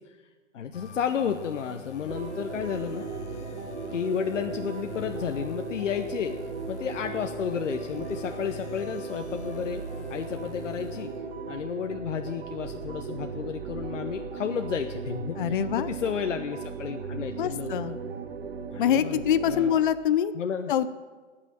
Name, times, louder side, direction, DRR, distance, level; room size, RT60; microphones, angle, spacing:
voice 1, 0.5-3.1 3.9-6.4 6.7-11.1 11.5-17.9 18.7-19.2 19.5-19.8 20.3-20.7, left 7 dB, 80° left, 6 dB, 0.9 m, -32 dB
sound 1, 0.7-11.5, left 5 dB, 65° left, 1.3 m, -47 dB
sound 2, 2.1-19.8, right 4 dB, 55° right, 1.3 m, -37 dB
voice 2, 15.4-15.9 17.4-18.0 18.8-20.3 20.7-20.9, left 9 dB, 45° left, 13 dB, 0.5 m, -24 dB
18.0 x 6.1 x 7.5 m, 1.4 s
hypercardioid pair, 155°, 36 cm